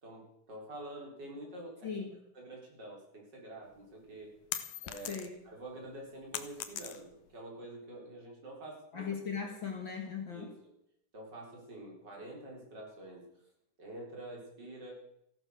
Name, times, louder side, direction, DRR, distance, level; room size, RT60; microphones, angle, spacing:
voice 1, 0.0-1.9 2.3-4.3 4.8-9.1 10.3-10.5 11.1-13.2 13.8-14.9, right 1 dB, 35° right, -1 dB, 4.9 m, -47 dB
voice 2, 1.8-2.2 5.1-5.4 8.9-10.5, left 6 dB, 45° left, 4 dB, 1.9 m, -38 dB
sound 1, 3.7-5.5 5.9-7.3, left 10 dB, 70° left, 2.3 m, -41 dB
14.5 x 12.0 x 6.4 m, 0.78 s
omnidirectional pair, 3.5 m